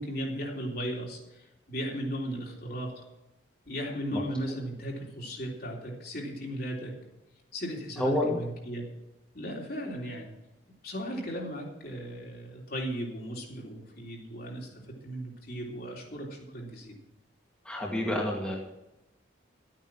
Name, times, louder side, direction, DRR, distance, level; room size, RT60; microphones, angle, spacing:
voice 1, 0.0-3.0 3.7-6.9 7.5-8.9 9.3-10.3 10.8-14.7 15.0-17.0, equal, 55° left, -1 dB, 3.4 m, -36 dB
voice 2, 8.0-8.4 17.7-18.5, left 1 dB, 5° left, -3 dB, 2.1 m, -28 dB
12.5 x 9.0 x 6.0 m, 0.94 s
head